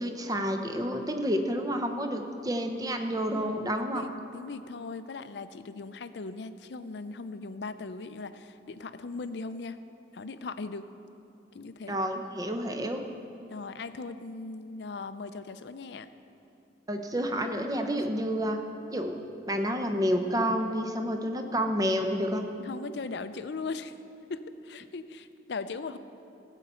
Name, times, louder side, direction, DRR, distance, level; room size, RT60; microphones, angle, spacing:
voice 1, 0.0-4.1 11.9-13.0 16.9-18.6 18.9-19.2 19.5-22.4, equal, 20° right, 5 dB, 0.7 m, -29 dB
voice 2, 3.4-9.8 10.1-10.9 11.5-12.0 13.5-16.1 22.6-23.9 24.3-26.0, left 4 dB, 65° left, 11 dB, 0.5 m, -39 dB
16.5 x 8.1 x 4.3 m, 2.8 s
head